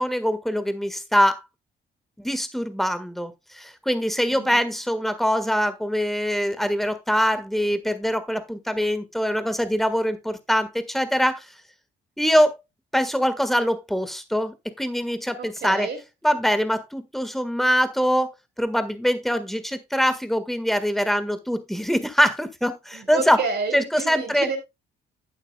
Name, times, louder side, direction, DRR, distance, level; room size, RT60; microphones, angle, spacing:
voice 1, 0.0-1.4 2.2-11.5 12.2-12.6 12.9-15.9 16.2-23.4 23.7-24.5, equal, ahead, 1.6 m, -23 dB
voice 2, 4.3-4.7 15.4-16.0 22.9-24.6, right 4 dB, 60° right, 4.2 m, -30 dB
11.5 x 8.9 x 2.3 m
cardioid pair, 90°, 20 cm